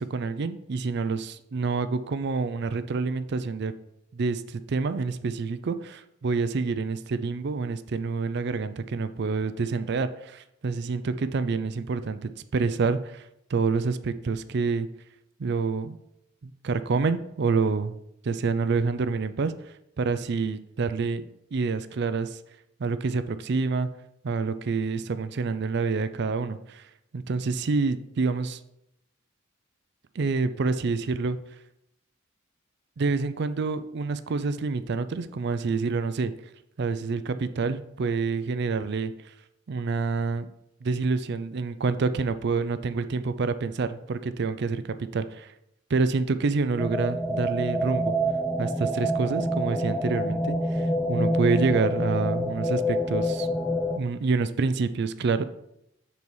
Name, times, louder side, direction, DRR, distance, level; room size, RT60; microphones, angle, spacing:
voice 1, 0.0-3.7 4.1-14.9 15.4-16.0 16.4-17.9 18.2-19.5 20.0-22.4 22.8-23.9 24.2-26.9 27.1-28.6 30.2-31.4 33.0-36.3 36.8-39.1 39.7-40.5 40.8-45.5 45.9-48.1 48.6-53.5 54.0-55.4, right 4 dB, 60° right, 12 dB, 0.4 m, -27 dB
sound 1, 46.8-54.0, equal, 5° left, 0.4 m, -27 dB
7.1 x 4.1 x 4.7 m, 0.80 s
head